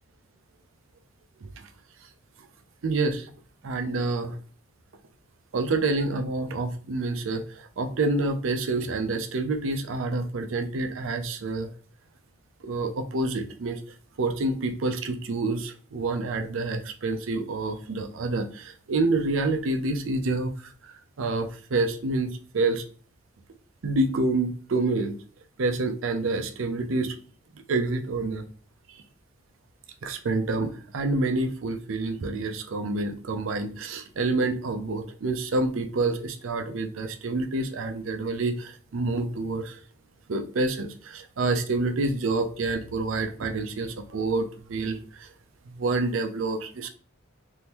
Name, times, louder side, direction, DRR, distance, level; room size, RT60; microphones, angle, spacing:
voice 1, 2.8-3.3 3.6-4.4 5.5-11.7 12.6-13.8 14.2-20.9 21.2-22.9 23.8-25.2 25.6-27.2 27.5-28.5 28.9-29.0 30.0-39.8 40.3-45.3 45.7-46.9, right 2 dB, 70° right, 6 dB, 0.5 m, -28 dB
3.5 x 2.6 x 2.9 m, 0.42 s
head